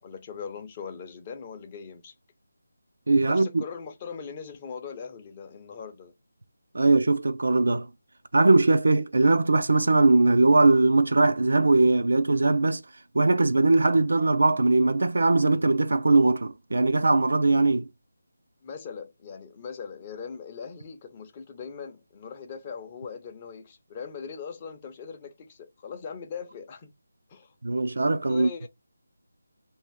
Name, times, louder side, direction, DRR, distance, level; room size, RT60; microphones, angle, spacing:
voice 1, 0.0-2.1 3.2-6.1 18.6-26.9 27.3-27.8 28.3-28.7, left 6 dB, 20° left, 0.6 m, -40 dB
voice 2, 3.1-3.6 6.7-7.9 8.3-12.8 13.1-17.9 27.6-28.5, right 2 dB, 60° right, 0.4 m, -20 dB
2.7 x 2.5 x 3.4 m
figure-of-eight pair, 160°, 0 cm